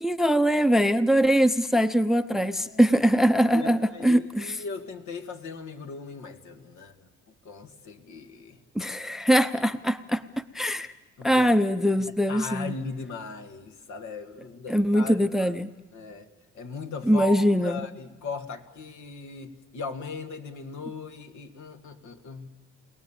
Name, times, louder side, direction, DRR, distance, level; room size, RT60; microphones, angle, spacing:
voice 1, 0.0-4.6 8.7-10.2 10.5-10.9 11.2-12.7 14.7-15.7 17.1-17.8, equal, ahead, 12 dB, 0.7 m, -22 dB
voice 2, 2.4-2.9 3.5-7.0 7.4-8.6 11.2-11.5 12.3-15.6 15.9-16.3 16.5-22.5, left 4 dB, 70° left, 5 dB, 2.0 m, -38 dB
29.0 x 18.0 x 7.4 m, 1.1 s
cardioid pair, 90°, 30 cm